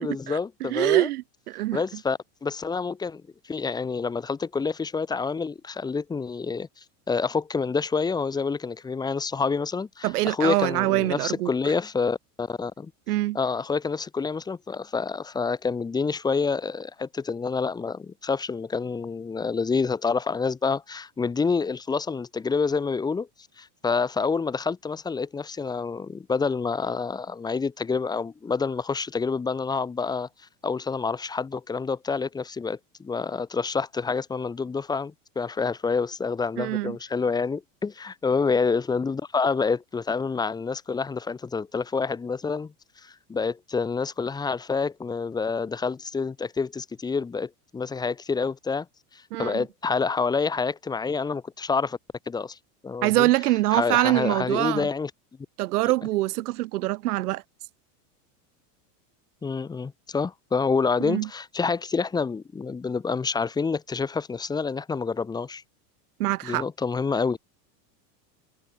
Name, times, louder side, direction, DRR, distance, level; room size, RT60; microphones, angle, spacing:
voice 1, 0.0-1.1 1.7-12.9 13.3-23.3 23.6-30.3 30.6-42.7 43.0-48.9 49.1-52.0 52.3-52.6 52.8-53.3 53.7-55.1 59.4-65.6 66.4-67.4, left 5 dB, 10° left, 1.9 m, -28 dB
voice 2, 0.7-1.8 10.0-11.5 13.1-13.4 36.6-37.0 49.3-49.6 53.0-54.9 55.6-57.4 61.0-61.3 66.2-66.7, right 17 dB, 65° right, 3.6 m, -24 dB
supercardioid pair, 175°, 48 cm